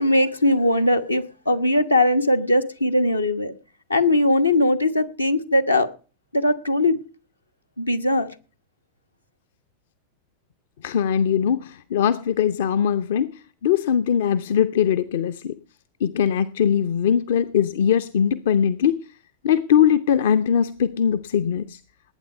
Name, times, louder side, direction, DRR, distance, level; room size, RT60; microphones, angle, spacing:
voice 1, 0.0-3.5 3.9-5.9 6.3-7.0 7.8-8.3, left 1 dB, 85° left, 8 dB, 1.3 m, -20 dB
voice 2, 10.8-15.6 16.0-19.0 19.4-21.8, left 8 dB, 55° left, 13 dB, 0.7 m, -21 dB
19.0 x 9.1 x 5.3 m, 0.37 s
figure-of-eight pair, 90°, 0 cm